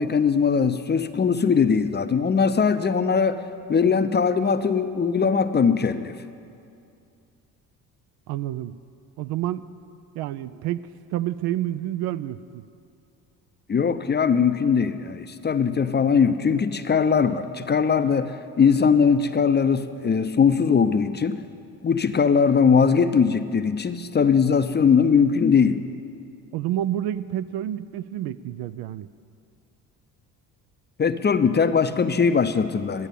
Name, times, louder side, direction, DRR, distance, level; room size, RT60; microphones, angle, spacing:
voice 1, 0.0-3.4 3.7-6.1 13.7-21.4 21.8-25.8 31.0-33.1, left 6 dB, 25° left, 10 dB, 0.6 m, -20 dB
voice 2, 8.3-8.8 9.2-9.7 10.1-12.6 26.5-29.1, right 12 dB, 60° right, 14 dB, 0.5 m, -29 dB
12.0 x 8.9 x 8.3 m, 2.5 s
hypercardioid pair, 55°, 46 cm